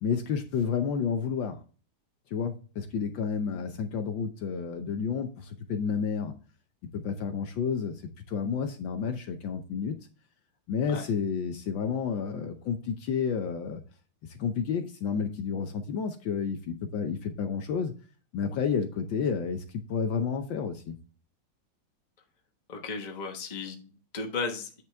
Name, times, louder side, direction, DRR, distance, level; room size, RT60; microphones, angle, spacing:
voice 1, 0.0-1.6 2.3-6.4 6.9-8.0 8.3-10.0 10.7-13.8 14.3-17.9 18.3-21.0, left 6 dB, 70° left, 7 dB, 1.4 m, -30 dB
voice 2, 22.7-24.8, left 4 dB, 25° left, 3 dB, 1.0 m, -35 dB
9.1 x 5.9 x 3.4 m, 0.36 s
omnidirectional pair, 2.4 m